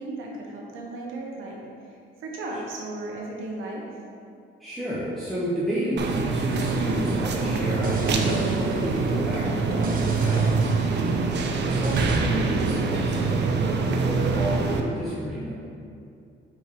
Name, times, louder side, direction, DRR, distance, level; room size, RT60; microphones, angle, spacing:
voice 1, 0.0-3.9, right 2 dB, 85° right, -2 dB, 1.1 m, -35 dB
voice 2, 4.6-10.7 11.6-15.6, equal, ahead, -10 dB, 1.2 m, -31 dB
sound 1, 6.0-14.8, right 4 dB, 60° right, 0.6 m, -24 dB
sound 2, 6.5-12.2, right 1 dB, 45° right, 1.1 m, -35 dB
5.0 x 4.5 x 5.1 m, 2.5 s
cardioid pair, 90°, 20 cm